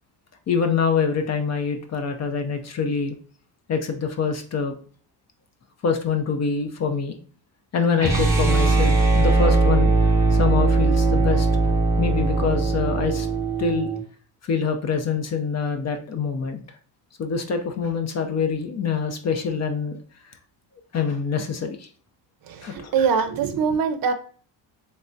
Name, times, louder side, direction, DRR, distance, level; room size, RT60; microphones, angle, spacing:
voice 1, 0.5-3.1 3.7-4.7 5.8-7.2 7.7-9.9 10.3-11.5 12.0-13.3 13.6-13.9 14.4-16.6 17.2-20.0 20.2-20.4 20.9-21.9 22.6-22.9, left 5 dB, 35° left, 6 dB, 0.5 m, -25 dB
sound 1, 8.0-14.0, right 3 dB, 5° right, 0.9 m, -20 dB
voice 2, 22.4-24.1, right 6 dB, 50° right, 8 dB, 0.6 m, -23 dB
3.3 x 3.2 x 2.6 m, 0.43 s
cardioid pair, 115°, 45 cm